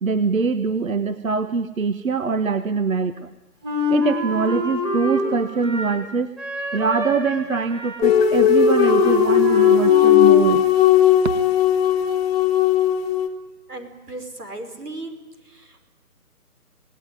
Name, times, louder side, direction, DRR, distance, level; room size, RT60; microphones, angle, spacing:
voice 1, 0.0-3.3 3.9-6.3 6.7-10.7, right 5 dB, 60° right, 12 dB, 1.4 m, -23 dB
Wind instrument woodwind instrument, 3.6-6.1 6.4-10.5, left 1 dB, 10° right, 2.9 m, -26 dB
sound 1, 8.0-13.3, left 9 dB, 10° left, 1.0 m, -16 dB
voice 2, 13.7-15.2 15.5-15.9, right 2 dB, 85° right, 8 dB, 5.6 m, -36 dB
28.0 x 18.5 x 9.7 m, 1.1 s
figure-of-eight pair, 155°, 46 cm